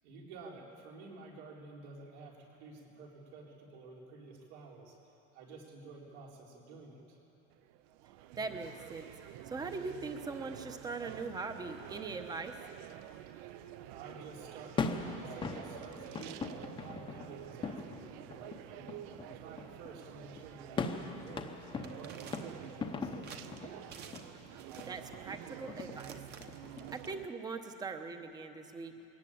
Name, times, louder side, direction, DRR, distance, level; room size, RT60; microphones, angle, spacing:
voice 1, 0.0-5.0 5.3-7.2 13.9-18.9 19.3-23.6, right 3 dB, 85° right, -2 dB, 4.4 m, -51 dB
sound 1, 7.5-27.3, right 13 dB, 55° right, 0.7 m, -49 dB
voice 2, 8.4-9.1 9.5-12.6 24.9-26.2 26.9-28.9, right 4 dB, 10° right, 7 dB, 0.9 m, -41 dB
sound 2, 13.6-26.9, left 4 dB, 15° left, 0.8 m, -42 dB
sound 3, 21.8-22.7 23.2-23.4 23.9-24.3 24.6-25.1 25.8-27.1, right 7 dB, 30° right, 1.2 m, -51 dB
21.5 x 18.0 x 8.7 m, 3.0 s
cardioid pair, 175°, 32 cm